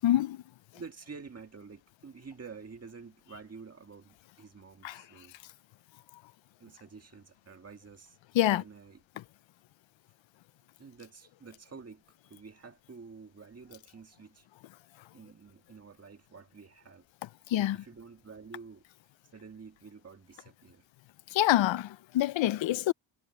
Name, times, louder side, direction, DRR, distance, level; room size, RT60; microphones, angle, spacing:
voice 1, 0.0-0.4 4.8-5.0 8.3-8.6 17.5-17.8 21.3-22.9, left 13 dB, 70° left, 0.6 m, -26 dB
voice 2, 0.7-5.6 6.6-8.2 8.5-9.0 10.8-14.5 15.1-17.1 17.7-18.8 19.3-20.9, right 5 dB, 30° right, 1.9 m, -49 dB
wide cardioid pair, 145°, 48 cm